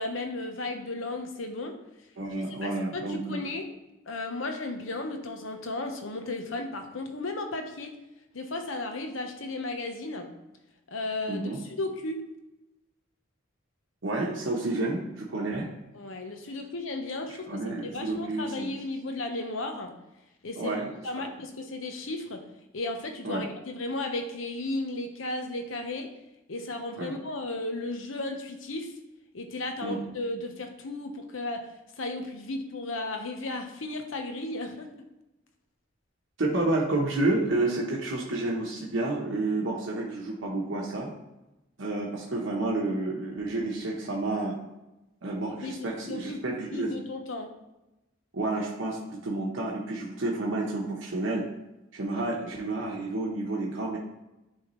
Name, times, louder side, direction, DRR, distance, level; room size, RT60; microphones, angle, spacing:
voice 1, 0.0-1.8 2.6-3.7 4.1-8.0 8.3-10.3 10.9-12.2 15.9-19.9 20.4-20.8 21.0-22.4 22.7-26.1 26.5-28.9 29.3-31.7 32.0-34.9 45.6-47.5, left 2 dB, 85° left, 5 dB, 0.9 m, -34 dB
voice 2, 2.2-3.4 11.3-11.6 14.0-15.7 17.5-18.7 20.6-21.2 23.2-23.5 27.0-27.1 29.8-30.0 36.4-41.1 41.8-44.6 45.2-46.9 48.3-51.5 51.9-54.0, right 2 dB, 80° right, -3 dB, 1.0 m, -30 dB
10.0 x 3.5 x 3.1 m, 0.97 s
head